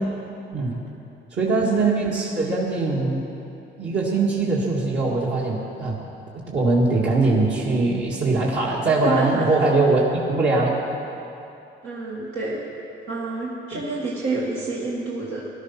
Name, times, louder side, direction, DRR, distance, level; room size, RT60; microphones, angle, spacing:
voice 1, 1.3-3.2 3.8-6.0 6.3-10.8 13.7-13.8, right 3 dB, 65° right, -6 dB, 2.4 m, -21 dB
voice 2, 9.0-9.4 11.8-12.6 13.1-15.4, right 3 dB, 90° right, -6 dB, 1.9 m, -28 dB
16.0 x 12.0 x 6.0 m, 2.8 s
cardioid pair, 90°, 20 cm